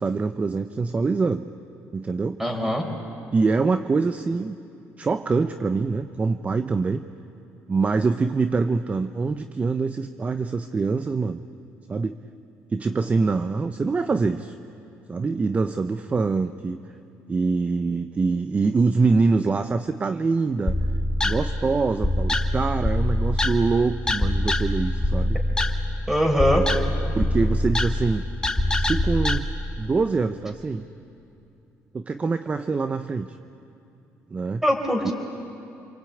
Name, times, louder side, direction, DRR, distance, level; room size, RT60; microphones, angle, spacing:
voice 1, 0.0-1.5 1.9-2.4 3.3-4.6 5.0-7.0 7.7-11.4 11.9-12.2 12.7-14.6 15.1-16.8 17.3-20.8 21.2-25.4 27.1-28.2 28.8-29.5 29.8-30.8 31.9-33.3 34.3-34.6 35.0-35.1, right 4 dB, 25° right, 10 dB, 0.7 m, -24 dB
voice 2, 2.4-2.8 26.1-26.7 34.6-35.1, equal, 5° right, 3 dB, 4.4 m, -22 dB
sound 1, 20.7-29.4, left 1 dB, 15° left, 1.6 m, -24 dB
27.5 x 23.0 x 8.6 m, 2.7 s
cardioid pair, 100°, 5 cm